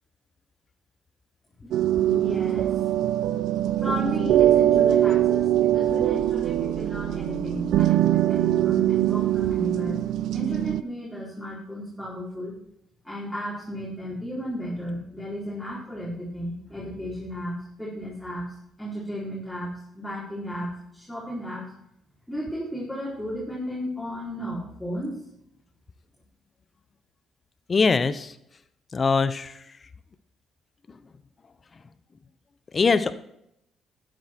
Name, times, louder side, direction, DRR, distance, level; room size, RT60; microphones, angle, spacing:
sound 1, 1.7-10.8, right 12 dB, 80° right, 0.5 m, -22 dB
voice 1, 2.0-2.9 3.8-10.0 10.3-12.6 13.0-21.7 22.3-25.2, equal, 5° left, -7 dB, 4.1 m, -34 dB
voice 2, 27.7-28.3 28.9-29.6 32.7-33.1, left 4 dB, 40° left, 13 dB, 0.9 m, -22 dB
12.5 x 9.3 x 4.5 m, 0.77 s
supercardioid pair, 75°, 0 cm